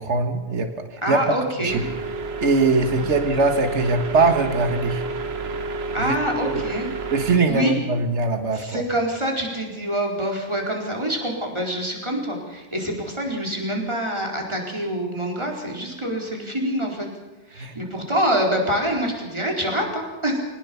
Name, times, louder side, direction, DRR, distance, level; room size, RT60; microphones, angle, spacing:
voice 1, 0.0-1.8 2.4-5.0 6.0-6.2 6.5-6.6 7.1-8.8 17.6-17.7, right 3 dB, 85° right, 6 dB, 1.9 m, -22 dB
voice 2, 1.0-1.9 5.9-6.9 7.5-7.8 8.5-17.1 17.5-20.4, equal, 25° right, 0 dB, 4.4 m, -25 dB
sound 1, 1.7-7.4, right 4 dB, 65° right, 1.5 m, -30 dB
22.5 x 18.5 x 7.1 m, 1.2 s
omnidirectional pair, 1.2 m